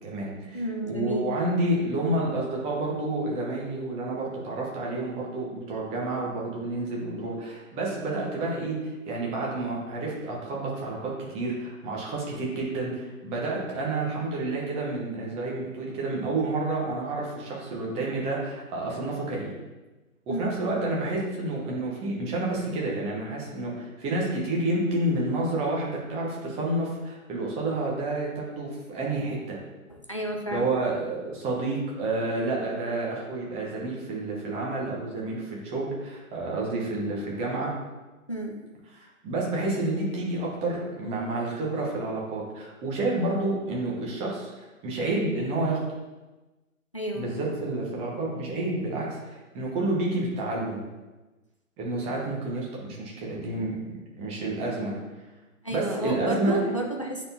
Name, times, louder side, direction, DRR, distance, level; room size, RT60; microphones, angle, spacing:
voice 1, 0.0-19.5 20.3-29.6 30.5-37.7 38.9-44.5 44.8-45.8 47.1-50.8 51.8-55.0 55.7-56.6, right 2 dB, 15° right, -3 dB, 1.1 m, -29 dB
voice 2, 0.5-1.3 20.3-20.6 29.9-31.0 38.3-38.6 46.9-47.3 53.3-53.6 55.6-57.3, right 1 dB, 25° left, 1 dB, 0.3 m, -31 dB
9.3 x 4.1 x 2.8 m, 1.1 s
figure-of-eight pair, 140°, 43 cm